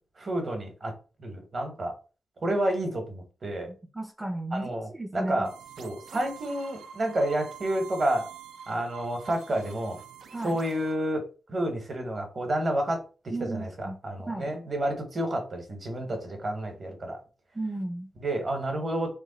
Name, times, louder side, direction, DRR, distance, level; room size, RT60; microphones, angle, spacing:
voice 1, 0.2-0.9 1.2-1.9 2.4-3.7 4.5-5.5 5.8-8.3 8.7-10.0 10.4-13.0 13.4-17.2 18.2-19.1, right 1 dB, 40° right, 4 dB, 0.9 m, -30 dB
voice 2, 3.9-5.5 10.3-10.6 13.3-14.0 14.3-14.5 17.5-18.1, right 2 dB, 10° right, 2 dB, 0.4 m, -34 dB
sound 1, 5.4-11.0, right 8 dB, 85° right, 0.4 m, -46 dB
3.1 x 2.1 x 3.8 m, 0.34 s
wide cardioid pair, 125°, 0 cm